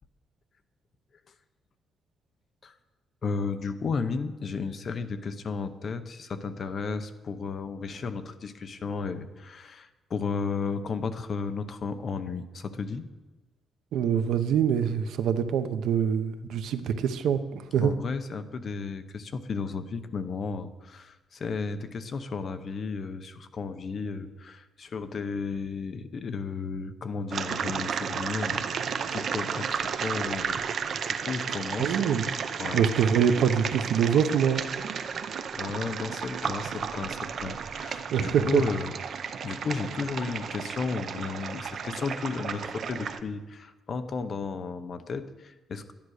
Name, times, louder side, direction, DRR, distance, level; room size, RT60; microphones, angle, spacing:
voice 1, 3.2-13.0 17.8-30.6 31.0-32.0 32.6-32.9 35.0-35.1 35.5-38.9 39.4-45.9, left 4 dB, 35° left, 10 dB, 0.8 m, -34 dB
voice 2, 13.9-17.9 31.8-32.3 32.7-34.6 38.1-38.6, right 8 dB, 75° right, 10 dB, 0.8 m, -24 dB
sound 1, 27.3-43.2, right 7 dB, 45° right, 0.6 m, -33 dB
12.0 x 10.5 x 6.4 m, 1.2 s
cardioid pair, 175°, 0 cm